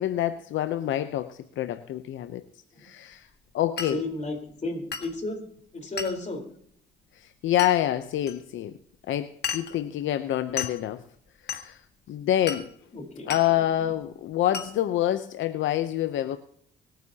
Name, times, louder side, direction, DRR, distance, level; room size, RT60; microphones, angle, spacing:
voice 1, 0.0-2.4 2.8-3.3 3.5-4.0 7.2-8.7 9.1-11.0 11.4-11.8 12.1-12.7 13.3-16.4, left 12 dB, 75° left, 10 dB, 0.7 m, -27 dB
Glass, 3.8-4.0 4.9-5.1 6.0-6.2 7.6-7.8 8.3-8.4 9.4-9.8 10.6-10.8 11.5-11.7 12.5-12.7 13.3-13.5 14.5-14.7, left 7 dB, 55° left, 1.7 m, -33 dB
voice 2, 3.9-5.4 5.7-6.4 12.9-13.3 13.8-13.9, left 2 dB, 35° left, 3 dB, 4.1 m, -33 dB
25.0 x 9.2 x 2.9 m, 0.67 s
cardioid pair, 90°, 20 cm